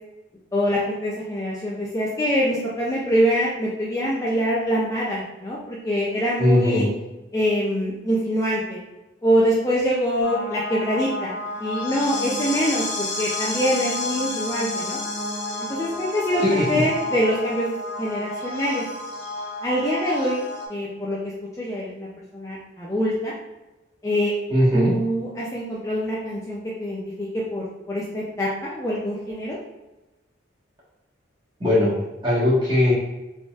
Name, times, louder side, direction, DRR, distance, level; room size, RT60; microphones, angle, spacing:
voice 1, 0.5-6.9 7.3-8.8 9.2-11.3 11.6-15.0 15.6-18.8 19.6-20.4 20.7-21.2 21.6-22.1 22.3-23.3 24.0-24.3 24.7-29.6, equal, 15° left, -6 dB, 0.4 m, -24 dB
voice 2, 6.4-6.9 16.4-16.8 24.5-24.9 31.6-32.9, left 1 dB, 25° right, -8 dB, 1.4 m, -19 dB
sound 1, 10.2-20.7, left 2 dB, 80° left, 1.2 m, -30 dB
3.8 x 3.6 x 2.4 m, 1.0 s
head